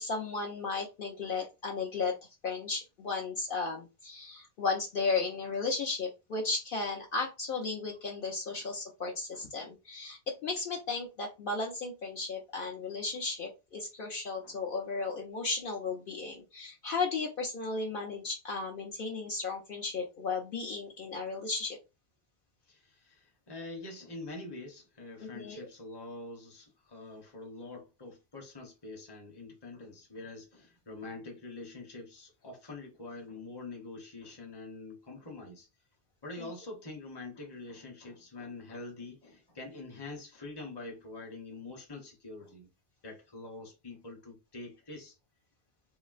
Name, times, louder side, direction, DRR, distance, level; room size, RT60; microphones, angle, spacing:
voice 1, 0.0-2.2 2.4-21.8 25.2-25.7 36.4-36.5, left 4 dB, 60° left, 0.8 m, -35 dB
voice 2, 22.7-35.7 36.2-42.7 43.0-45.2, left 2 dB, 25° left, 0.8 m, -45 dB
3.7 x 2.0 x 2.4 m
omnidirectional pair, 1.1 m